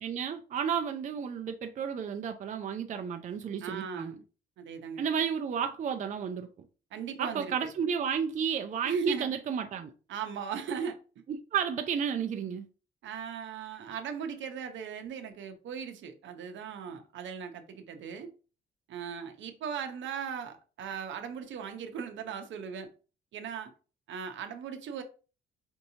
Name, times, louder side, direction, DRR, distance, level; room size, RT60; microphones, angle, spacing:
voice 1, 0.0-4.1 5.0-6.5 7.2-9.9 11.3-12.7, right 7 dB, 40° right, 0.4 m, -32 dB
voice 2, 3.6-4.2 4.6-5.0 6.9-7.7 8.8-9.3 10.1-11.0 13.0-18.3 18.9-22.9 23.3-23.7 24.1-25.0, right 7 dB, 70° right, 0.7 m, -38 dB
4.4 x 2.8 x 2.7 m
cardioid pair, 90°, 20 cm